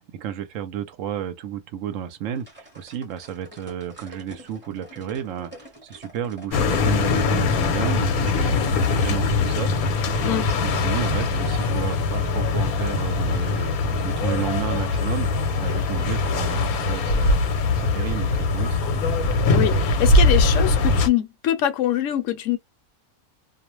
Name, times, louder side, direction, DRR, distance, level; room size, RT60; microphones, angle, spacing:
voice 1, 0.1-15.3 15.6-17.4 17.8-18.8, right 9 dB, 70° right, 0.9 m, -32 dB
sound 1, 2.3-7.8, equal, 10° right, 0.8 m, -46 dB
sound 2, 6.5-21.1, left 3 dB, 85° left, 1.1 m, -22 dB
voice 2, 19.5-22.6, left 12 dB, 70° left, 0.9 m, -24 dB
2.4 x 2.0 x 3.0 m
omnidirectional pair, 1.5 m